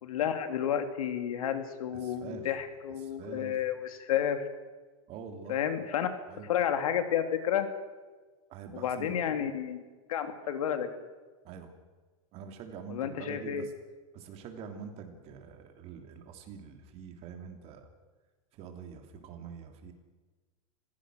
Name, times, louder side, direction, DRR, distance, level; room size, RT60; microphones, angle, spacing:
voice 1, 0.0-4.4 5.5-6.1 6.4-7.7 8.7-9.8 10.1-10.9 12.9-13.7, left 9 dB, 85° left, 8 dB, 2.7 m, -31 dB
voice 2, 1.9-2.5 3.0-3.6 5.1-5.6 6.3-6.5 8.5-9.5 11.4-11.7 12.3-13.7 14.1-17.9 18.5-19.9, right 6 dB, 35° right, 5 dB, 3.1 m, -45 dB
26.0 x 16.5 x 6.4 m, 1.3 s
supercardioid pair, 155°, 18 cm